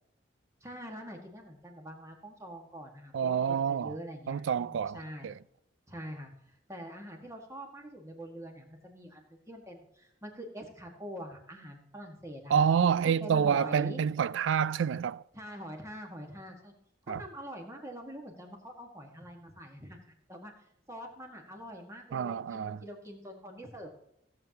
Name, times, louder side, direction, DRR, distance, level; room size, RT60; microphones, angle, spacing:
voice 1, 0.6-5.3 5.9-12.7 13.2-14.0 15.3-16.7 17.1-20.5 20.9-23.9, equal, 15° right, 1.7 m, -44 dB
voice 2, 3.1-3.9 4.3-5.0 5.2-5.3 12.5-15.2 17.1-17.2 22.1-22.8, right 7 dB, 85° right, 0.3 m, -28 dB
16.0 x 7.5 x 2.9 m
head